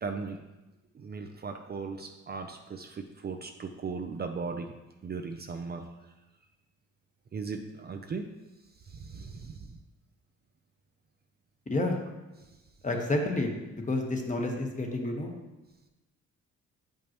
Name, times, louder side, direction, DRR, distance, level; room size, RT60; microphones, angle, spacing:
voice 1, 0.0-0.4 0.9-4.7 5.0-5.8 7.3-8.3 8.8-9.8 12.4-12.5, right 4 dB, 35° right, 5 dB, 0.5 m, -37 dB
voice 2, 12.8-15.3, left 2 dB, 25° left, 2 dB, 1.3 m, -30 dB
8.8 x 5.3 x 3.0 m, 1.0 s
cardioid pair, 90°, 30 cm